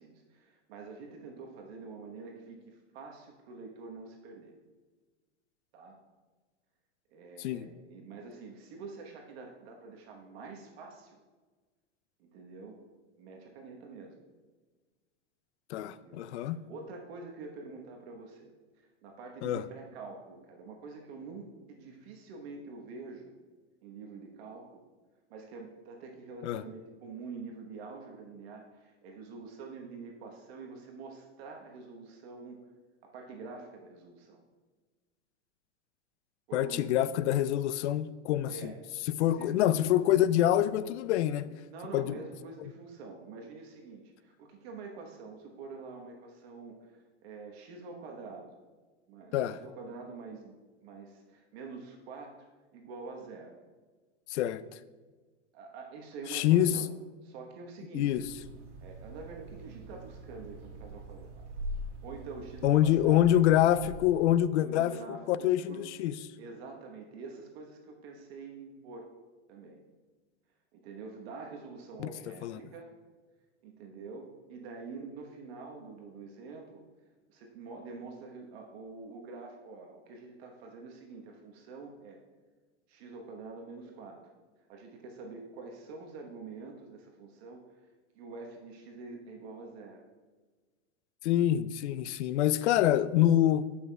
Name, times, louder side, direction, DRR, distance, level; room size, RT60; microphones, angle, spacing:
voice 1, 0.0-4.5 5.7-6.0 7.1-11.2 12.2-12.9 13.2-14.2 16.0-18.5 18.8-23.3 23.8-24.8 25.3-32.6 33.0-34.4 36.5-37.0 38.5-38.8 39.2-39.6 40.0-40.2 41.7-48.5 49.1-50.5 50.8-52.4 52.7-53.6 55.5-56.9 57.2-58.1 58.8-61.4 62.0-63.3 64.5-65.8 66.4-69.1 69.5-69.8 70.7-72.9 73.6-76.8 77.3-82.2 82.9-84.2 84.7-87.6 88.1-90.0, right 4 dB, 60° right, 1.1 m, -46 dB
voice 2, 15.7-16.6 19.4-19.6 26.4-26.6 36.5-38.7 39.1-41.5 41.9-42.2 49.3-49.6 54.3-54.6 56.3-56.7 57.9-58.2 62.6-64.9 65.3-66.2 72.0-72.1 72.4-72.6 91.2-93.7, left 12 dB, 70° left, 0.5 m, -26 dB
sound 1, 58.1-64.3, right 1 dB, 85° right, 1.3 m, -43 dB
12.0 x 5.7 x 2.2 m
hypercardioid pair, 125°, 35 cm